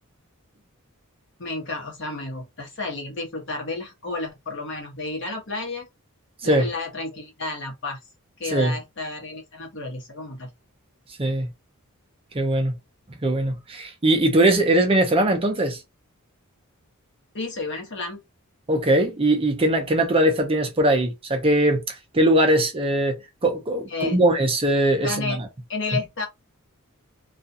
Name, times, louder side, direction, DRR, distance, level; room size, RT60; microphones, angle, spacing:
voice 1, 1.4-5.9 6.4-8.0 8.4-10.5 17.3-18.2 23.9-24.2 25.0-25.4 25.7-26.3, left 3 dB, 55° left, 1.0 m, -31 dB
voice 2, 12.3-12.7 13.2-15.8 18.7-25.4 25.9-26.0, right 1 dB, 25° right, 0.5 m, -21 dB
2.4 x 2.2 x 2.6 m
head